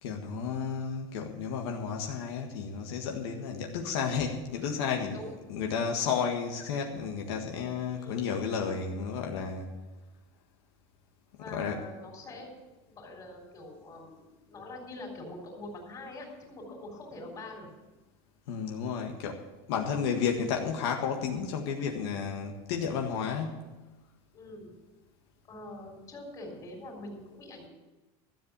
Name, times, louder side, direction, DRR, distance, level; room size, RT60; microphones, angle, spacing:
voice 1, 0.0-5.2 5.5-9.7 11.5-11.8 18.5-19.4 19.7-23.7, left 6 dB, 80° left, 2 dB, 1.7 m, -32 dB
voice 2, 7.9-8.3 11.4-12.5 13.0-17.7 22.9-23.3 24.3-24.7 25.5-27.7, left 2 dB, 25° left, 1 dB, 4.0 m, -44 dB
13.5 x 7.6 x 8.4 m, 1.1 s
cardioid pair, 155°, 13 cm